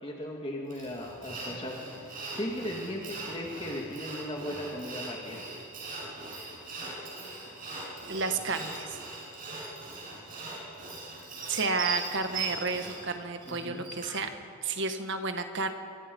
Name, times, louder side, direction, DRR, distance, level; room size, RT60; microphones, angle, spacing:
voice 1, 0.0-5.4 13.5-13.8, left 1 dB, 25° left, -1 dB, 2.3 m, -37 dB
Sawing, 0.7-14.3, right 3 dB, 40° right, 7.6 m, -40 dB
voice 2, 8.1-9.0 11.5-14.3 14.6-15.7, right 4 dB, 55° right, 7 dB, 1.7 m, -31 dB
27.0 x 24.0 x 5.5 m, 2.6 s
head